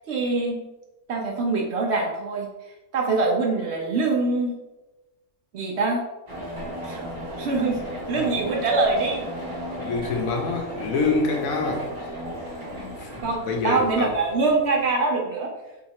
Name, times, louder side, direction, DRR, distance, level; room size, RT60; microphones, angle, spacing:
voice 1, 0.1-0.6 1.1-2.5 2.9-4.5 5.5-6.0 6.8-7.1 7.4-7.8 8.1-9.3 13.2-15.5, right 3 dB, 65° right, 0 dB, 0.7 m, -24 dB
sound 1, 6.3-14.9, equal, 25° right, 1.0 m, -35 dB
voice 2, 9.7-12.1 12.7-14.1, left 3 dB, 75° left, 3 dB, 1.0 m, -27 dB
2.8 x 2.7 x 4.1 m, 1.0 s
omnidirectional pair, 1.5 m